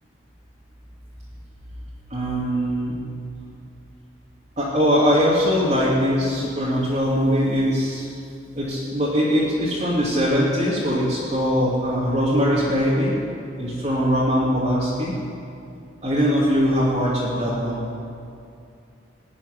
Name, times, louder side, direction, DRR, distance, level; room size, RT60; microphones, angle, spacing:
voice 1, 2.1-3.0 4.6-8.0 8.5-13.1 13.6-15.1 16.0-17.8, equal, 35° right, -9 dB, 2.6 m, -21 dB
20.0 x 7.0 x 9.9 m, 2.5 s
head